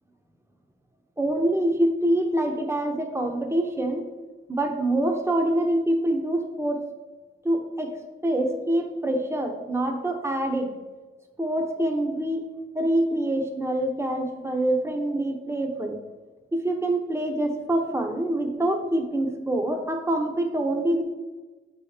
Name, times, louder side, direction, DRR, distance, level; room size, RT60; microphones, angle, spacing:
voice 1, 1.2-4.1 4.5-6.8 7.4-8.0 8.2-10.7 11.4-12.5 12.7-16.0 16.5-21.0, right 1 dB, 15° right, 4 dB, 1.0 m, -25 dB
8.2 x 4.2 x 5.0 m, 1.2 s
wide cardioid pair, 120°, 21 cm